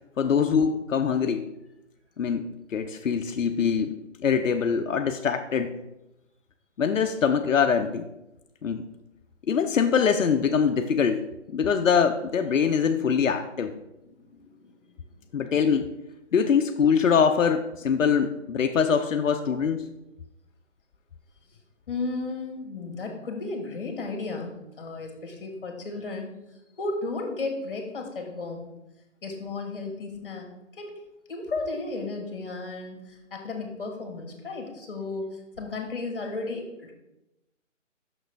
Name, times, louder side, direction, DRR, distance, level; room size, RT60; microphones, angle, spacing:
voice 1, 0.2-1.5 2.2-5.7 6.8-8.1 8.6-8.9 9.5-11.3 11.5-13.7 15.3-15.9 16.3-19.9, left 6 dB, 90° left, 6 dB, 0.6 m, -23 dB
voice 2, 14.2-14.9 21.9-26.3 26.8-28.7 29.2-30.5 30.7-31.0 31.3-36.9, left 3 dB, 45° left, 2 dB, 1.7 m, -34 dB
6.3 x 6.1 x 3.4 m, 0.92 s
hypercardioid pair, 165°, 38 cm